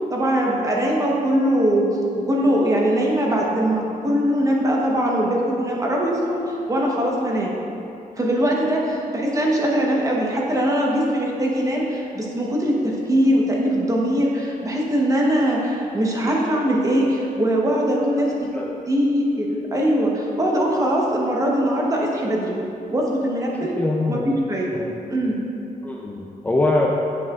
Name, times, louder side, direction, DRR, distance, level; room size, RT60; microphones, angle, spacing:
voice 1, 0.1-1.8 2.2-7.5 8.1-18.5 18.9-22.5 22.9-23.7 24.1-24.8 25.1-25.4, equal, 20° right, -3 dB, 1.0 m, -21 dB
voice 2, 23.5-24.3 24.7-24.9 25.8-27.0, left 2 dB, 10° left, -2 dB, 0.4 m, -23 dB
8.0 x 7.4 x 2.4 m, 2.7 s
wide cardioid pair, 150°, 15 cm